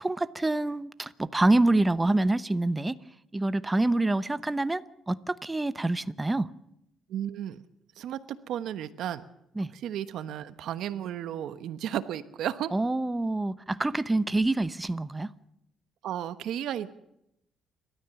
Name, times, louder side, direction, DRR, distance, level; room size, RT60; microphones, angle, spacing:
voice 1, 0.0-2.9 3.3-6.5 9.6-9.7 12.7-15.3, right 2 dB, 15° right, 0.9 m, -26 dB
voice 2, 7.1-7.6 8.0-9.2 9.7-12.7 16.0-16.9, right 10 dB, 80° right, 1.1 m, -33 dB
29.5 x 13.0 x 7.1 m
cardioid pair, 90°, 0 cm